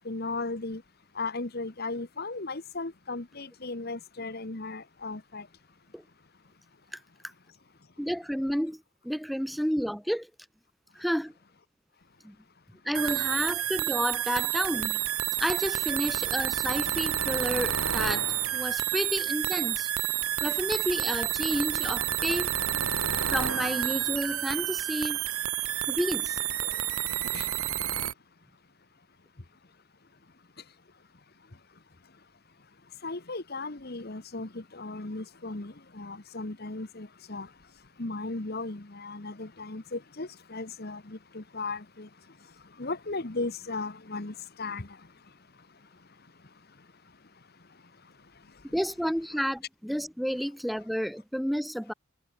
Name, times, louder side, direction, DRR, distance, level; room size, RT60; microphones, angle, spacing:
voice 1, 0.0-0.8 1.2-5.4 27.3-27.5 33.0-37.5 38.0-42.1 42.8-44.3 44.6-44.9, left 3 dB, 45° left, 1.2 m, -36 dB
voice 2, 8.0-10.3 10.9-11.3 12.2-12.3 12.8-15.0 15.4-18.2 18.5-19.9 20.4-22.5 23.3-25.2 25.9-26.8 48.7-51.9, equal, ahead, 3.3 m, -31 dB
sound 1, 12.9-28.1, right 11 dB, 75° right, 2.8 m, -29 dB
head